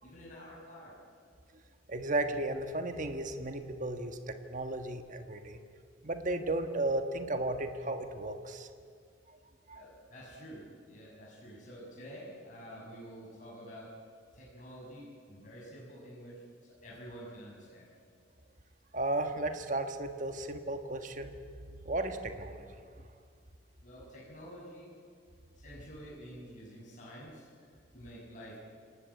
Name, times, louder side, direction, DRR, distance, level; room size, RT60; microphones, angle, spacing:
voice 1, 0.0-0.9 9.7-13.9 14.3-17.9 23.8-25.0 25.5-27.7 27.9-28.6, equal, 40° left, -5 dB, 6.6 m, -49 dB
voice 2, 1.9-5.6 6.0-8.7 9.7-9.8 18.9-21.3 21.8-22.8, right 2 dB, 40° right, 7 dB, 1.6 m, -34 dB
27.0 x 19.0 x 8.5 m, 2.3 s
head